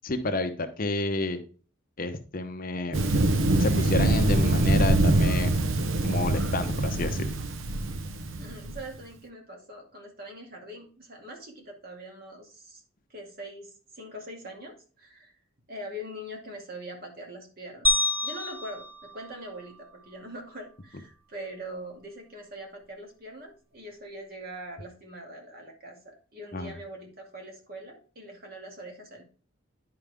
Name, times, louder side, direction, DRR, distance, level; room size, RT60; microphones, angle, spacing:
voice 1, 0.0-1.4 2.0-3.0 3.6-5.5 6.0-7.3 26.5-26.7, left 2 dB, 45° left, 8 dB, 0.8 m, -30 dB
Thunder, 2.9-8.8, right 2 dB, 75° right, 0.8 m, -24 dB
voice 2, 8.4-12.8 13.1-15.4 15.7-18.0 18.2-29.2, right 1 dB, 45° right, 1 dB, 2.4 m, -42 dB
sound 1, 17.8-20.2, left 2 dB, 10° right, 0.8 m, -29 dB
10.5 x 4.8 x 3.5 m, 0.38 s
head